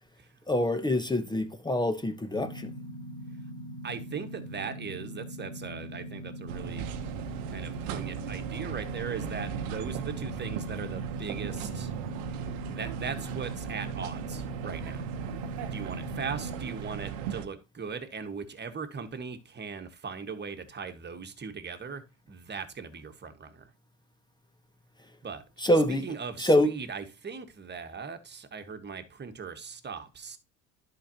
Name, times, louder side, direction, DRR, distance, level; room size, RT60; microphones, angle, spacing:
voice 1, 0.5-2.7 25.6-26.1 26.4-26.7, left 1 dB, 10° left, 1.1 m, -25 dB
sound 1, 2.3-16.6, equal, 70° left, 2.8 m, -41 dB
voice 2, 3.8-6.9 7.5-11.9 12.7-15.1 15.7-22.0 22.3-23.7 25.2-25.4 25.9-30.4, right 5 dB, 25° right, 1.5 m, -39 dB
sound 2, 6.5-17.5, right 8 dB, 70° right, 1.0 m, -37 dB
11.0 x 5.1 x 2.9 m
hypercardioid pair, 70°, 39 cm